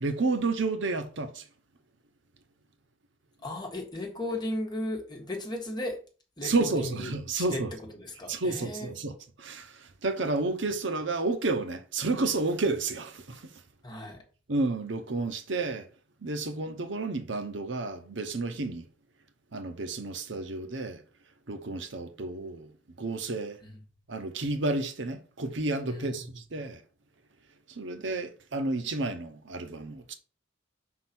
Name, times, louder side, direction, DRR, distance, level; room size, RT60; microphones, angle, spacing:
voice 1, 0.0-1.4 6.4-7.7 8.3-9.1 9.4-13.5 14.5-15.9 16.2-18.8 19.5-21.0 21.5-22.7 23.0-23.6 24.1-26.8 27.7-30.1, right 3 dB, 70° right, 0.9 m, -31 dB
voice 2, 3.4-6.0 6.4-7.6 7.9-8.9 13.8-14.2 23.6-23.8 25.9-26.2, left 1 dB, 20° left, 1.5 m, -36 dB
5.4 x 3.9 x 5.9 m
head